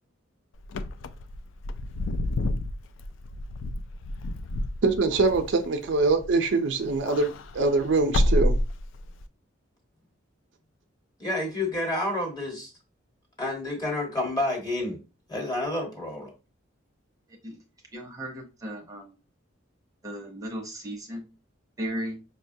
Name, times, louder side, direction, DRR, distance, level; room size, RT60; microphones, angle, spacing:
Wind / Car, 0.6-6.5 6.8-9.2, left 1 dB, 80° left, 0.3 m, -29 dB
voice 1, 4.8-8.6, right 3 dB, 65° right, 0.5 m, -24 dB
voice 2, 11.2-12.7 13.4-15.0 15.3-16.3, left 1 dB, 20° left, 1.2 m, -29 dB
voice 3, 17.9-19.2 20.0-21.3 21.8-22.2, equal, 20° right, 0.7 m, -35 dB
5.3 x 2.2 x 2.6 m
head